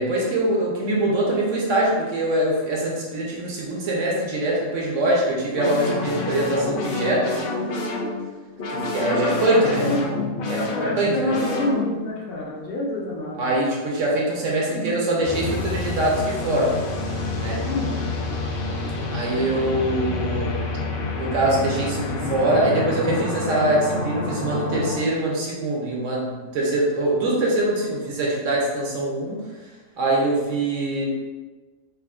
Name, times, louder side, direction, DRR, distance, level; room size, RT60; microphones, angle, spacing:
voice 1, 0.0-7.4 8.7-9.8 10.5-11.3 13.4-16.7 17.4-17.6 19.1-20.6 21.2-29.7 30.0-31.1, right 1 dB, 60° right, -3 dB, 1.0 m, -23 dB
sound 1, 5.5-12.1 15.2-25.0, left 2 dB, 85° left, 0.4 m, -28 dB
voice 2, 9.0-10.0 10.6-13.4 14.8-14.9 17.6-18.0 19.8-20.1, left 1 dB, 45° left, -3 dB, 0.8 m, -28 dB
4.9 x 2.6 x 2.5 m, 1.3 s
omnidirectional pair, 1.7 m